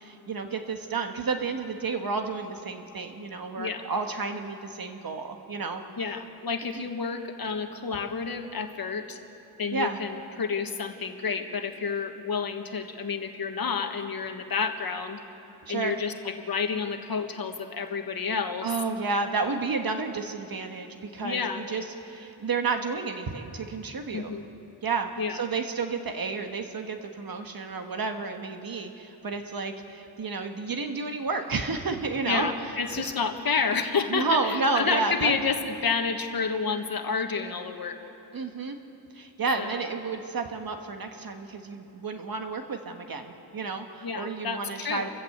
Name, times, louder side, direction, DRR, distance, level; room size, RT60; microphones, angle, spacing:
voice 1, 0.0-5.8 6.7-6.9 9.7-10.0 15.7-15.9 18.6-24.3 24.8-32.5 32.9-33.0 34.1-35.3 38.3-38.8 39.1-45.1, right 4 dB, 60° right, 5 dB, 1.4 m, -31 dB
voice 2, 6.0-9.2 9.6-15.2 15.7-18.7 21.2-21.6 24.1-24.4 25.2-25.4 32.2-38.0 39.6-39.9 44.0-45.1, left 5 dB, 60° left, 5 dB, 1.5 m, -30 dB
28.5 x 15.0 x 8.0 m, 3.0 s
wide cardioid pair, 160°, 40 cm